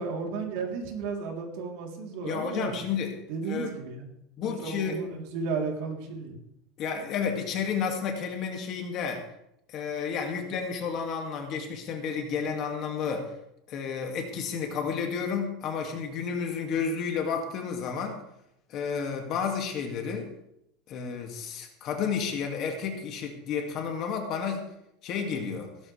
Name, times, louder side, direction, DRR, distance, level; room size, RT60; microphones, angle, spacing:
voice 1, 0.0-2.8 3.3-4.1 4.6-6.4, right 4 dB, 60° right, 1 dB, 3.4 m, -33 dB
voice 2, 2.2-3.1 3.4-3.7 4.4-5.0 6.8-9.2 9.7-13.3 13.7-18.2 18.7-20.3 20.9-24.6 25.0-25.7, left 6 dB, 35° left, 3 dB, 2.3 m, -31 dB
17.0 x 13.0 x 3.4 m, 0.80 s
supercardioid pair, 170°, 0 cm